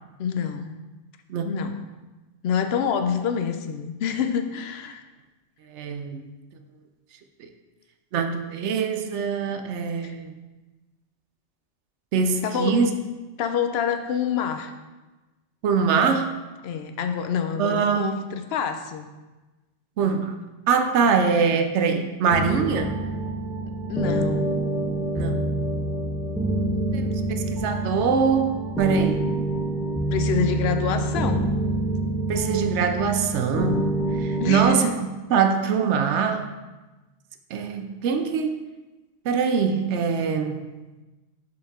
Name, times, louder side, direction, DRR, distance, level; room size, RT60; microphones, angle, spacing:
voice 1, 0.2-0.7 1.4-1.8 2.4-5.0 10.0-10.1 12.4-12.8 13.4-14.7 16.6-19.1 23.9-24.6 30.1-31.5 34.4-35.0, left 7 dB, 65° left, 7 dB, 0.8 m, -27 dB
voice 2, 5.7-6.2 7.4-7.5 8.1-10.4 12.1-12.9 15.6-16.3 17.6-18.2 20.0-20.3 20.7-22.9 25.1-25.4 26.9-29.3 32.3-36.5 37.5-38.6 39.2-40.7, right 6 dB, 75° right, 7 dB, 0.9 m, -23 dB
sound 1, 22.3-34.7, right 2 dB, ahead, 0.3 m, -26 dB
6.2 x 4.4 x 3.6 m, 1.2 s
omnidirectional pair, 1.2 m